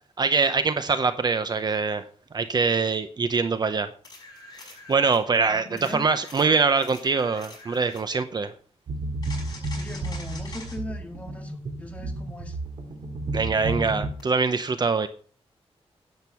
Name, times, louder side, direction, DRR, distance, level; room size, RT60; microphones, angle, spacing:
voice 1, 0.2-2.0 2.3-3.9 4.9-8.5 13.3-15.1, right 4 dB, 40° right, 10 dB, 0.7 m, -23 dB
sound 1, 4.0-5.2 5.8-8.1 9.2-10.8 14.2-14.3, left 3 dB, 40° left, 6.0 m, -44 dB
voice 2, 5.5-6.1 9.7-12.6, left 1 dB, 10° left, 3 dB, 2.0 m, -39 dB
sound 2, 8.9-14.1, right 2 dB, 65° right, 2.4 m, -32 dB
10.5 x 8.8 x 5.6 m, 0.42 s
wide cardioid pair, 170°, 11 cm